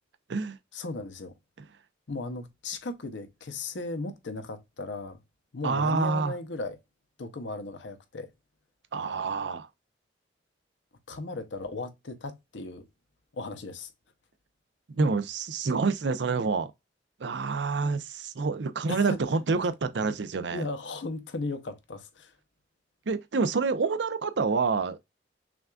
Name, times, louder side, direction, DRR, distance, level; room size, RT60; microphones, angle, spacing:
voice 1, 0.7-1.3 2.1-5.2 5.5-6.8 7.2-8.3 11.1-12.9 13.3-13.9 18.9-19.2 20.5-22.3, left 3 dB, 85° left, 0.8 m, -36 dB
voice 2, 5.6-6.4 8.9-9.7 14.9-16.7 17.2-20.6 23.1-25.0, right 4 dB, 70° right, 0.6 m, -27 dB
5.9 x 2.5 x 2.3 m
head